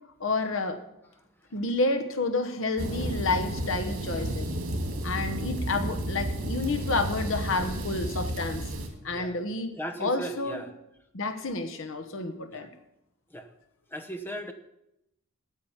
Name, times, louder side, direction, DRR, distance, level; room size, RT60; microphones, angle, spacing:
voice 1, 0.2-0.8 1.5-4.5 5.0-8.6 9.0-10.6 11.1-12.7, left 3 dB, 65° left, 6 dB, 1.0 m, -30 dB
sound 1, 2.8-8.9, right 1 dB, 80° right, 2.2 m, -32 dB
voice 2, 9.0-9.4 9.8-10.8 12.5-12.7 13.3-13.5 13.9-14.5, right 1 dB, 10° left, 7 dB, 0.8 m, -37 dB
9.1 x 8.5 x 7.2 m, 0.84 s
head